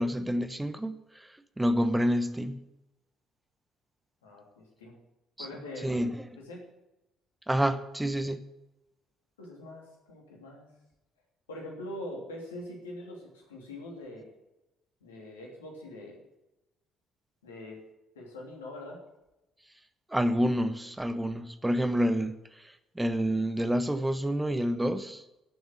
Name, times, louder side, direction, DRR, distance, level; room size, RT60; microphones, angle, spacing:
voice 1, 0.0-2.6 5.4-5.5 5.8-6.3 7.5-8.4 20.1-25.2, equal, 10° right, 11 dB, 1.0 m, -28 dB
voice 2, 4.2-5.0 5.4-6.0 6.4-6.6 9.4-10.7 11.5-14.3 15.0-16.2 17.4-17.8 18.1-19.0, left 1 dB, 85° left, -1 dB, 3.0 m, -43 dB
11.5 x 7.2 x 9.0 m, 0.94 s
hypercardioid pair, 50°, 0 cm